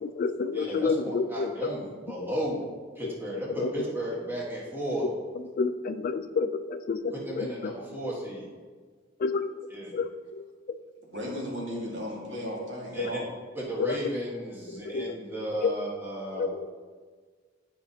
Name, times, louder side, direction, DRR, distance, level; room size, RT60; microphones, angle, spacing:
voice 1, 0.0-1.7 2.2-2.3 3.0-3.1 3.6-3.7 5.6-7.7 9.2-9.5 9.9-10.4 10.7-10.8 13.8-14.0 14.7-15.1 15.6-15.7 16.4-16.7, left 4 dB, 50° left, 10 dB, 0.3 m, -29 dB
voice 2, 0.5-2.6 3.0-5.0 7.1-8.5 9.7-9.9 12.9-13.2 13.5-16.5, right 1 dB, 10° right, -5 dB, 1.5 m, -34 dB
voice 3, 11.0-13.3, equal, 80° right, -3 dB, 1.9 m, -35 dB
10.5 x 5.1 x 2.8 m, 1.5 s
head